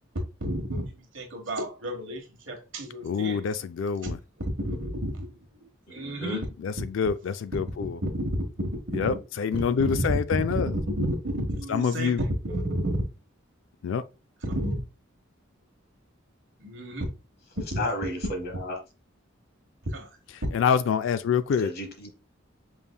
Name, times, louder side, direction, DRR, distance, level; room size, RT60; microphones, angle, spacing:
voice 1, 0.4-3.4 4.0-4.1 4.6-5.3 5.9-6.4 8.0-8.3 8.6-9.2 9.9-10.0 10.7-12.2 12.4-13.0 14.5-14.8 16.6-17.0 17.7-17.8 19.9-20.1, right 1 dB, 70° right, 1.3 m, -31 dB
voice 2, 3.0-4.2 6.6-8.0 8.9-10.7 11.7-12.2 13.8-14.0 20.5-21.7, left 6 dB, 70° left, 0.3 m, -26 dB
voice 3, 5.9-6.4 9.6-9.7 17.8-18.8 21.6-22.1, left 1 dB, 50° left, 1.1 m, -33 dB
5.4 x 3.4 x 2.2 m
head